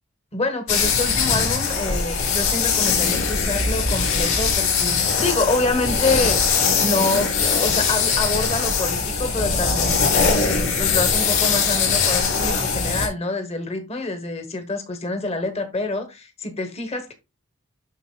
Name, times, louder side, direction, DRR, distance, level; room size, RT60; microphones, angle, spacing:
voice 1, 0.3-17.1, left 2 dB, 30° left, 1.0 m, -26 dB
sound 1, 0.7-13.1, left 5 dB, 80° left, 2.7 m, -21 dB
12.0 x 4.0 x 2.2 m
head